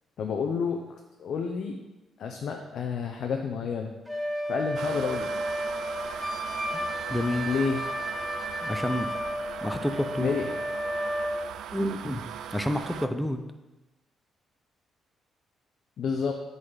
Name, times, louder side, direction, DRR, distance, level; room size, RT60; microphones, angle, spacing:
voice 1, 0.2-0.8 1.2-1.8 2.2-3.9 4.5-5.3 7.5-7.8 10.2-10.5 16.0-16.3, left 6 dB, 65° left, 3 dB, 0.7 m, -29 dB
Wind instrument woodwind instrument, 4.1-11.5, equal, 10° right, 1.2 m, -32 dB
sound 1, 4.8-13.1, right 9 dB, 80° right, 0.4 m, -39 dB
voice 2, 7.1-7.5 8.6-9.1 9.6-10.3 11.7-12.2 12.5-13.5, left 1 dB, 5° left, 7 dB, 0.6 m, -29 dB
7.8 x 4.1 x 5.7 m, 1.1 s
cardioid pair, 90°, 0 cm